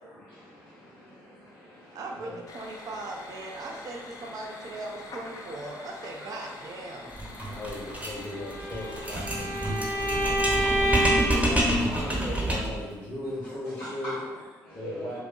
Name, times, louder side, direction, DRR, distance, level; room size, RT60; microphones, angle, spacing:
voice 1, 0.0-2.0 3.6-3.7 4.6-4.7 5.5-5.6 7.0-7.1 7.5-7.9 9.0-9.1 10.0-10.1 11.0-11.8 12.5-12.9 13.4-15.2, equal, 85° left, -11 dB, 0.6 m, -44 dB
voice 2, 1.9-7.1, right 2 dB, 45° right, 0 dB, 0.4 m, -39 dB
sound 1, 2.5-12.4, left 2 dB, 40° left, 0.4 m, -45 dB
sound 2, 7.1-12.8, right 1 dB, 15° right, 0.8 m, -28 dB
voice 3, 7.5-10.6 11.3-14.2 14.7-15.2, left 1 dB, 20° left, -5 dB, 0.9 m, -37 dB
Bowed string instrument, 8.5-11.5, equal, 90° right, 0.8 m, -27 dB
2.6 x 2.4 x 2.2 m, 1.3 s
hypercardioid pair, 45°, 9 cm